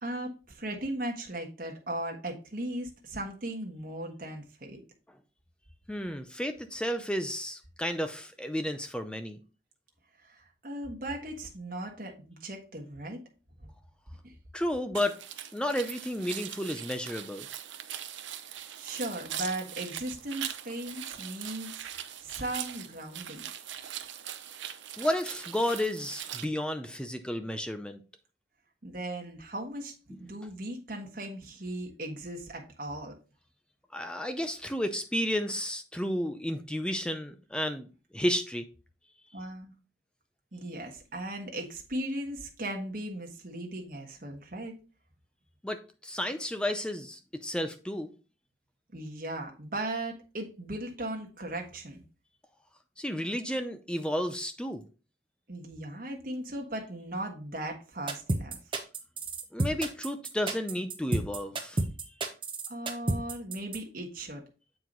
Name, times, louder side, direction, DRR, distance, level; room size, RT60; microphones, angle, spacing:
voice 1, 0.0-4.8 10.2-13.2 13.6-13.7 18.5-21.7 22.2-23.4 28.8-33.1 39.3-39.7 40.5-44.7 48.9-52.0 55.5-58.6 62.7-64.4, right 1 dB, 50° right, 1 dB, 1.3 m, -37 dB
voice 2, 5.9-9.4 14.5-15.2 15.5-17.5 25.0-28.0 33.9-37.9 38.1-38.7 45.6-48.1 53.0-54.8 59.5-61.8, equal, 5° left, 8 dB, 0.5 m, -32 dB
sound 1, 14.9-26.4, right 10 dB, 80° right, 0.7 m, -41 dB
sound 2, 58.1-63.8, right 2 dB, 25° right, 0.9 m, -30 dB
7.7 x 4.6 x 3.9 m, 0.34 s
head